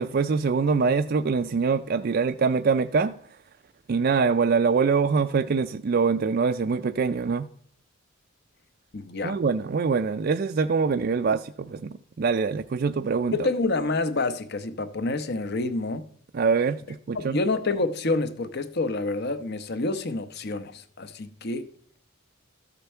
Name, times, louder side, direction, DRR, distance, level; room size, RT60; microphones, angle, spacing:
voice 1, 0.0-3.2 3.9-7.5 9.2-13.5 16.3-17.4, right 5 dB, 45° right, 0.4 m, -24 dB
voice 2, 8.9-9.4 13.3-16.1 17.1-21.7, left 3 dB, 50° left, 0.8 m, -28 dB
13.5 x 6.8 x 4.4 m
head